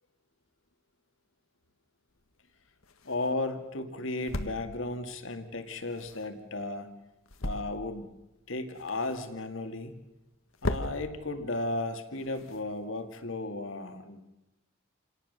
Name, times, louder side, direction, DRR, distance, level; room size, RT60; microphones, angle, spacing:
sound 1, 2.1-13.3, left 1 dB, 80° left, 1.6 m, -41 dB
voice 1, 3.0-6.9 7.4-8.1 8.5-10.0 10.6-14.3, left 2 dB, 65° left, 7 dB, 2.2 m, -35 dB
28.0 x 18.5 x 6.7 m, 0.96 s
head